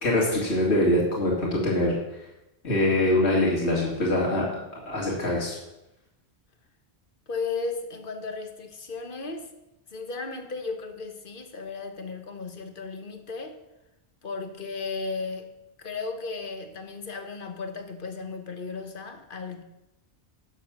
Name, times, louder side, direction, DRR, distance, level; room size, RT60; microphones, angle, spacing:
voice 1, 0.0-2.0 2.6-4.4 4.9-5.6, left 1 dB, 75° left, -4 dB, 2.5 m, -23 dB
voice 2, 7.3-9.5 9.9-13.6 14.2-15.5 15.8-19.6, left 4 dB, 50° left, 6 dB, 1.3 m, -35 dB
10.5 x 7.2 x 5.9 m, 0.93 s
omnidirectional pair, 1.1 m